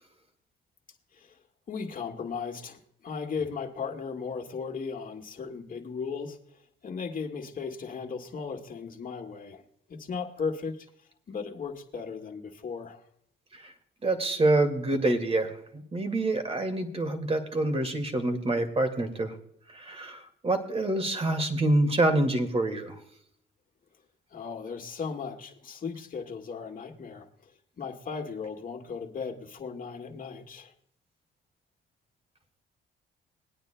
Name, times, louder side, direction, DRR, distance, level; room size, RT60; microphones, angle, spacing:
voice 1, 1.7-6.4 6.8-9.6 9.9-10.9 11.3-13.0 24.3-27.5 27.8-30.7, left 5 dB, 45° left, 3 dB, 1.9 m, -36 dB
voice 2, 14.0-19.3 19.7-22.9, right 2 dB, 30° right, 7 dB, 2.0 m, -26 dB
21.0 x 9.4 x 2.2 m, 0.70 s
cardioid pair, 90°, 20 cm